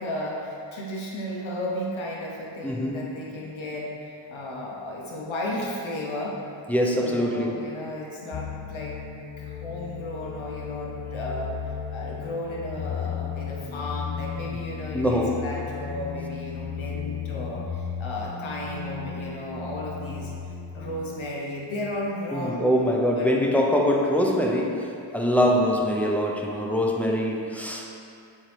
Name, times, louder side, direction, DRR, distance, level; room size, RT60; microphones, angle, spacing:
voice 1, 0.0-6.4 7.0-9.0 9.4-20.3 20.7-22.7 23.2-23.3, left 1 dB, 80° left, -3 dB, 0.8 m, -34 dB
voice 2, 2.6-3.2 6.7-7.7 14.9-15.5 22.3-27.9, equal, 5° left, -1 dB, 0.7 m, -24 dB
sound 1, 8.3-21.3, left 7 dB, 40° left, 0.4 m, -35 dB
7.5 x 3.9 x 3.3 m, 2.5 s
wide cardioid pair, 60°, 47 cm